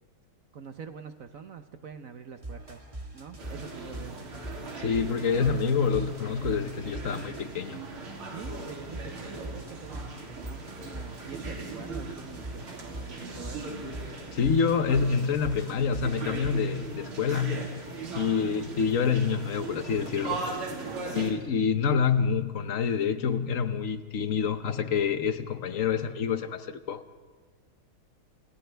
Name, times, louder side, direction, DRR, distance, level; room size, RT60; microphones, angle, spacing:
voice 1, 0.5-2.9 3.1-4.2 8.3-13.8 20.8-21.4, right 6 dB, 60° right, 8 dB, 0.9 m, -45 dB
sound 1, 2.4-7.7 8.4-16.5, right 1 dB, 15° right, 1.7 m, -42 dB
sound 2, 3.4-21.3, right 3 dB, 75° right, 3.6 m, -39 dB
voice 2, 4.8-7.8 14.3-17.7 18.1-20.4 21.1-27.0, left 6 dB, 55° left, 10 dB, 1.0 m, -27 dB
28.5 x 28.5 x 3.4 m, 1.4 s
omnidirectional pair, 2.3 m